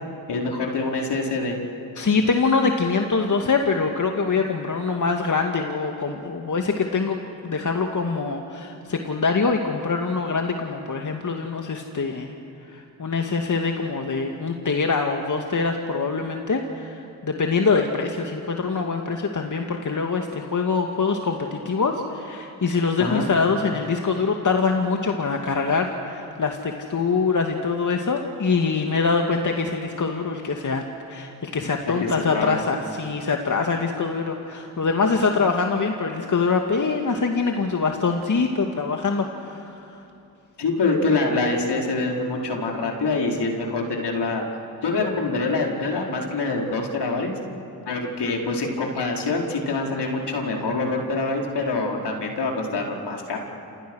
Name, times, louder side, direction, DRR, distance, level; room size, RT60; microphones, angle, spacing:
voice 1, 0.3-1.6 23.0-23.3 32.0-32.6 40.6-44.4 44.8-47.3 47.9-53.4, left 3 dB, 60° left, 0 dB, 4.9 m, -25 dB
voice 2, 2.0-7.2 7.4-12.3 12.7-30.8 31.1-40.0, left 4 dB, 40° left, 3 dB, 2.3 m, -24 dB
29.0 x 27.5 x 6.5 m, 2.8 s
supercardioid pair, 50°, 45 cm